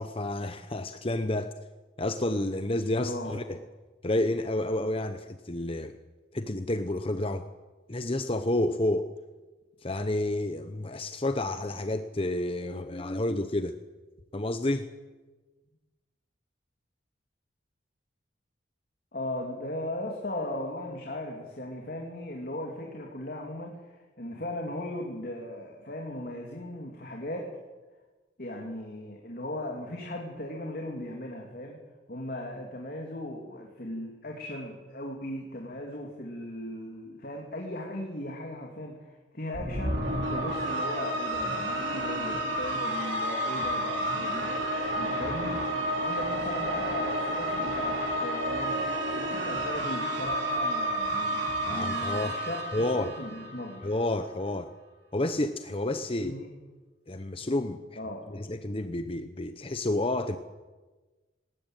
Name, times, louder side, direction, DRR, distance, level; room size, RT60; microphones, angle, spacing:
voice 1, 0.0-1.5 2.0-3.6 4.0-6.0 6.3-7.4 7.9-9.1 9.8-13.7 14.3-14.9 51.6-52.3 52.7-53.1 53.8-54.7 55.1-56.4 57.1-57.8 58.3-60.4, left 1 dB, 30° left, 9 dB, 0.9 m, -30 dB
voice 2, 3.0-3.4 19.1-27.5 28.4-31.8 32.1-44.6 44.9-45.6 45.9-53.9 56.2-56.5 58.0-58.3, left 1 dB, 50° left, 1 dB, 2.9 m, -37 dB
sound 1, 39.5-53.9, right 1 dB, 70° right, 4.3 m, -30 dB
19.5 x 18.5 x 9.1 m, 1.2 s
head